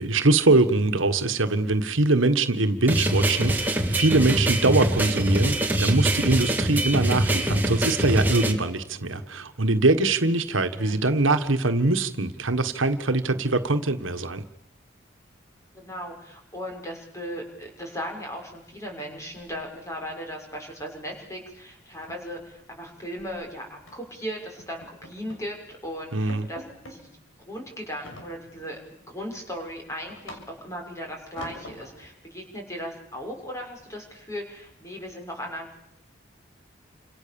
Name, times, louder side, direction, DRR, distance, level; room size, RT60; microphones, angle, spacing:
voice 1, 0.0-14.4 26.1-26.5, right 2 dB, 85° right, 9 dB, 1.6 m, -23 dB
sound 1, 2.9-8.5, right 1 dB, 10° right, 2.5 m, -24 dB
voice 2, 10.5-11.0 15.7-26.6 26.9-27.1 27.4-28.8 29.1-35.8, equal, 15° left, 1 dB, 6.5 m, -37 dB
sound 2, 19.1-19.9 20.2-20.5 20.8-21.0 21.3-21.4 21.8-23.3 23.9-24.1 24.6-25.5 25.9-26.0 26.3-27.0 28.0-28.8 29.2-30.8 31.4-32.1, left 1 dB, 85° left, 6.7 m, -45 dB
29.5 x 26.5 x 7.1 m, 0.80 s
head